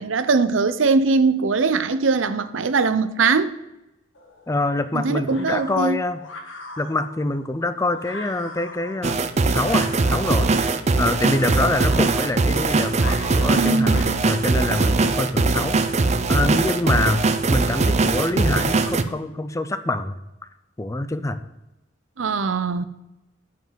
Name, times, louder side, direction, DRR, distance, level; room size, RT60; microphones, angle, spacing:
voice 1, 0.0-3.5 4.9-6.0 13.5-14.2 22.2-22.9, right 4 dB, 85° right, 0.6 m, -21 dB
sound 1, 4.1-14.0, left 2 dB, 90° left, 1.6 m, -41 dB
voice 2, 4.5-6.2 6.5-9.2 9.5-20.2 20.8-21.4, left 2 dB, 15° left, 0.5 m, -25 dB
sound 2, 9.0-19.0, right 3 dB, 35° right, 0.5 m, -21 dB
7.0 x 6.1 x 7.4 m
head